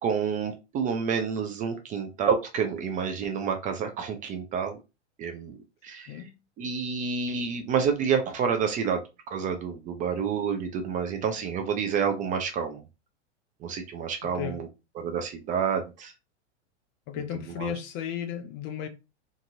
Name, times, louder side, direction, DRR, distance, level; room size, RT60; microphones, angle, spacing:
voice 1, 0.0-4.8 5.2-5.6 5.8-6.2 6.6-9.0 9.3-12.8 13.6-14.7 15.0-16.1 17.6-17.7, right 6 dB, 25° right, 0.4 m, -29 dB
voice 2, 6.1-6.4 14.3-14.6 17.1-18.9, left 9 dB, 35° left, 0.4 m, -34 dB
2.8 x 2.6 x 2.5 m
hypercardioid pair, 110°, 35 cm